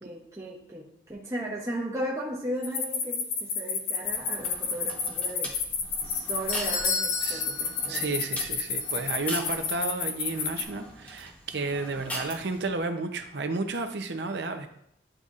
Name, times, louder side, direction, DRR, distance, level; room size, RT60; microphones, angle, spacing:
voice 1, 0.0-5.6 6.0-8.2, right 1 dB, 15° right, -4 dB, 0.7 m, -36 dB
sound 1, 2.6-10.6, left 6 dB, 75° left, 0.8 m, -30 dB
sound 2, 4.0-12.8, equal, 10° left, 1.0 m, -42 dB
Doorbell, 6.0-8.5 8.8-8.9 9.6-9.7, left 4 dB, 55° left, 1.1 m, -33 dB
voice 2, 7.9-14.7, right 3 dB, 70° right, 7 dB, 0.7 m, -32 dB
10.0 x 4.0 x 2.4 m, 0.74 s
head